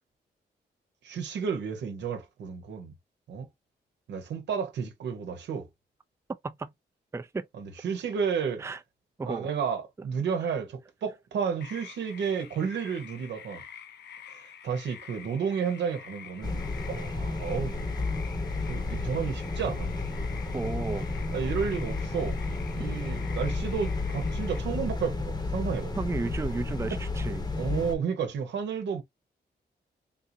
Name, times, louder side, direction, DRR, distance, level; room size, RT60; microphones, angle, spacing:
voice 1, 1.0-2.9 3.3-3.5 4.1-5.7 7.6-8.7 9.2-13.6 14.3-16.6 16.9-17.8 18.7-19.9 21.3-22.4 22.7-25.9 27.6-29.0, right 6 dB, 90° right, 0.9 m, -32 dB
voice 2, 7.1-7.5 8.6-8.8 9.2-9.5 20.5-21.1 26.0-27.4, right 3 dB, 15° right, 0.4 m, -33 dB
sound 1, 11.6-24.6, left 8 dB, 75° left, 0.6 m, -47 dB
sound 2, 16.4-28.0, left 3 dB, 25° left, 0.9 m, -32 dB
3.7 x 2.5 x 2.7 m
cardioid pair, 70°, 18 cm